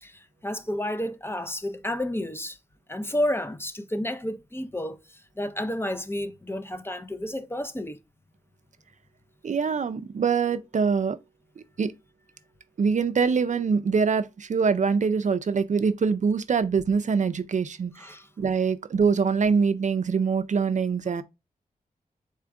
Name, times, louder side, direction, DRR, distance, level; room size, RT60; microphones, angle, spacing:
voice 1, 0.0-2.6 2.9-8.0 18.0-18.3, left 1 dB, 15° left, 0.5 m, -31 dB
voice 2, 9.4-11.2 11.8-11.9 12.8-18.1 18.4-21.2, right 5 dB, 55° right, 0.4 m, -24 dB
4.2 x 2.5 x 4.6 m
wide cardioid pair, 70°, 15 cm